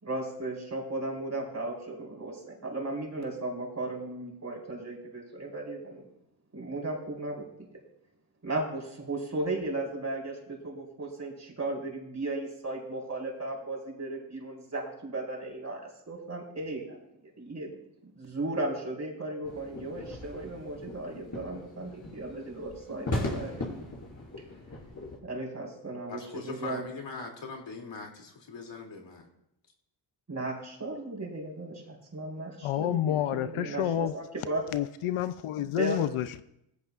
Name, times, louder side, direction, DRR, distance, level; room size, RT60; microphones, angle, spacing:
voice 1, 0.0-6.0 6.5-7.5 8.4-17.0 17.4-17.8 18.2-23.6 25.2-26.8 30.3-34.6 35.8-36.1, right 2 dB, 35° right, 4.5 m, -36 dB
sound 1, 19.4-25.2, left 1 dB, 35° left, 6.0 m, -38 dB
voice 2, 26.1-29.2, left 4 dB, 60° left, 2.9 m, -41 dB
voice 3, 32.6-34.2 34.7-36.4, left 11 dB, 80° left, 0.7 m, -29 dB
16.5 x 15.0 x 2.5 m
cardioid pair, 95°, 50 cm